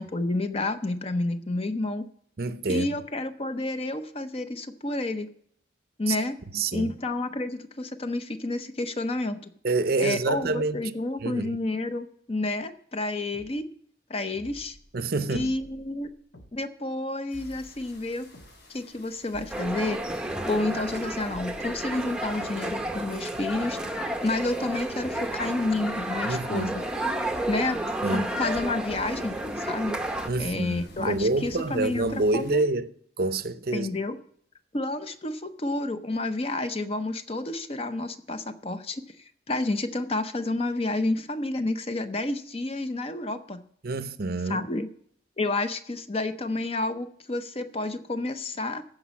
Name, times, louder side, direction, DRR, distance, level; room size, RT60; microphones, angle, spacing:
voice 1, 0.0-2.1 2.7-5.3 6.0-6.3 6.7-9.5 10.0-13.7 14.1-14.8 15.3-16.1 16.5-18.3 18.7-20.0 20.5-23.8 24.2-26.8 27.5-30.0 30.4-32.7 33.7-34.2 34.7-39.0 39.5-43.6 44.5-44.9 45.4-48.8, left 2 dB, 30° left, 0.6 m, -30 dB
voice 2, 2.4-2.9 6.1-6.2 6.5-6.9 9.6-10.9 11.2-11.6 14.9-15.5 26.2-26.8 28.0-28.3 30.3-33.9 43.8-44.7, right 3 dB, 50° right, 0.6 m, -27 dB
sound 1, 13.3-13.5 14.3-15.0 15.3-16.5 17.3-18.5 19.3-20.6 21.3-23.5 24.3-24.4 25.3-25.6 26.3-27.0 27.3-28.0 28.3-29.0, equal, 80° left, 1.6 m, -49 dB
sound 2, 17.3-32.6, equal, 65° left, 3.6 m, -51 dB
sound 3, 19.5-30.3, right 1 dB, 5° right, 0.7 m, -31 dB
14.5 x 5.1 x 7.1 m
head